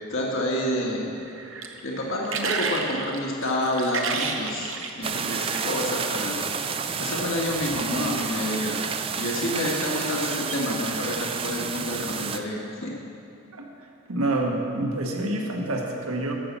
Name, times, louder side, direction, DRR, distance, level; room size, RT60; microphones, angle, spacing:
voice 1, 0.1-1.1 1.8-6.4 6.7-8.8 9.2-12.9, left 1 dB, 60° left, -2 dB, 1.5 m, -28 dB
sound 1, 1.2-5.8 6.6-6.8, right 5 dB, 60° right, 0.9 m, -31 dB
sound 2, 5.0-12.4, right 6 dB, 25° right, 0.3 m, -30 dB
voice 2, 14.1-16.3, right 2 dB, 75° right, 1 dB, 1.4 m, -27 dB
13.0 x 5.8 x 7.3 m, 2.5 s
head